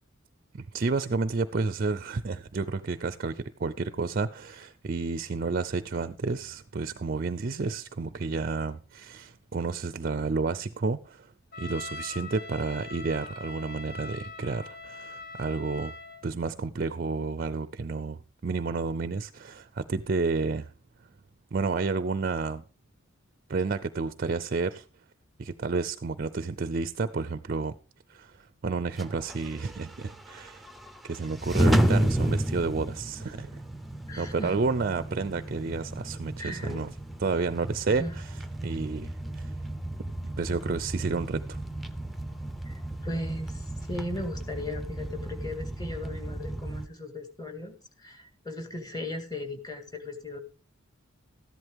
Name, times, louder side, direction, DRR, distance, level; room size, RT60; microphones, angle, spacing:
voice 1, 0.5-11.3 11.6-15.9 16.2-20.7 21.5-22.6 23.5-24.9 25.4-27.7 28.1-30.7 31.0-33.5 34.2-36.9 37.2-38.3 38.6-39.5 40.2-41.6, right 4 dB, 45° right, 0.4 m, -31 dB
Trumpet, 11.5-16.3, left 3 dB, 55° left, 1.8 m, -42 dB
sound 1, 29.0-46.9, right 1 dB, ahead, 0.6 m, -32 dB
voice 2, 34.1-34.6 36.4-36.8 38.0-38.1 42.7-50.4, left 1 dB, 20° left, 2.0 m, -37 dB
13.5 x 11.0 x 3.5 m
head